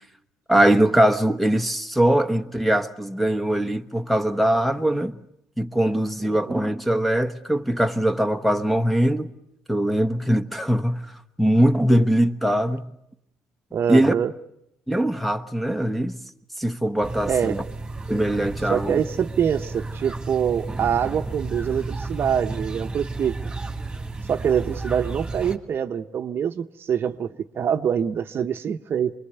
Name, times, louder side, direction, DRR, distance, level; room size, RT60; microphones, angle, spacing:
voice 1, 0.5-5.2 5.6-9.3 9.7-12.9 13.9-14.1 14.9-16.2 16.6-17.6 18.1-19.0, right 1 dB, ahead, 1.1 m, -21 dB
voice 2, 13.7-14.3 17.3-17.6 18.7-23.4 24.3-27.3 27.5-29.1, right 8 dB, 50° right, 0.8 m, -24 dB
sound 1, 17.0-25.6, right 3 dB, 15° right, 2.3 m, -32 dB
24.0 x 22.0 x 8.1 m
supercardioid pair, 85°, 5 cm